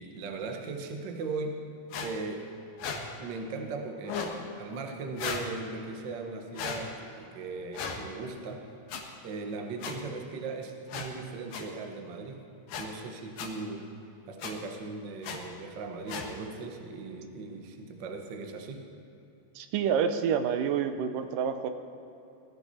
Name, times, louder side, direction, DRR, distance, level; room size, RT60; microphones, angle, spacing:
voice 1, 0.0-1.6 2.0-2.6 3.2-8.6 9.2-12.4 12.8-13.9 14.3-18.9, right 3 dB, 55° right, 4 dB, 1.2 m, -38 dB
sound 1, 1.9-2.1 2.8-3.0 4.0-4.4 5.2-5.5 6.5-6.8 7.7-8.0 8.9-9.0 9.8-9.9 10.9-11.1 11.5-11.6 12.7-12.8 13.4-13.5 14.4-14.5 15.2-15.4 16.1-16.3, left 6 dB, 85° left, 3.0 m, -35 dB
voice 2, 19.6-21.7, right 7 dB, 85° right, 8 dB, 2.4 m, -28 dB
19.5 x 13.5 x 4.3 m, 2.9 s
omnidirectional pair, 3.8 m